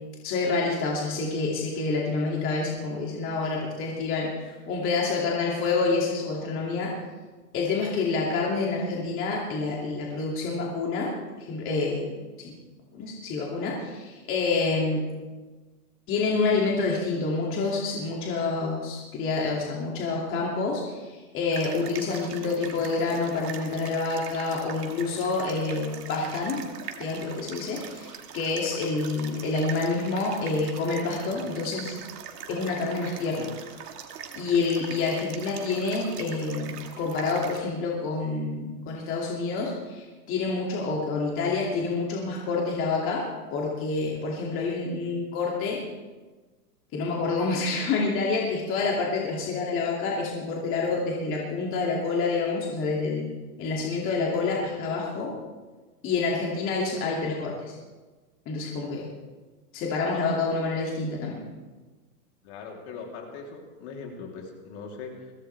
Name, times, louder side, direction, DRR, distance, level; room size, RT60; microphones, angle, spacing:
voice 1, 0.2-6.9 7.5-11.1 11.4-12.5 12.9-15.0 16.1-26.6 27.0-32.0 32.5-33.5 34.3-43.2 43.5-45.8 46.9-53.3 53.6-55.3 56.0-57.8 58.5-59.0 59.7-61.4, left 3 dB, 25° left, -3 dB, 2.6 m, -28 dB
sound 1, 21.5-37.6, right 7 dB, 70° right, 2.3 m, -42 dB
voice 2, 62.4-65.3, left 4 dB, 45° left, 1 dB, 3.4 m, -40 dB
22.5 x 17.0 x 3.5 m, 1.3 s
hypercardioid pair, 145°, 48 cm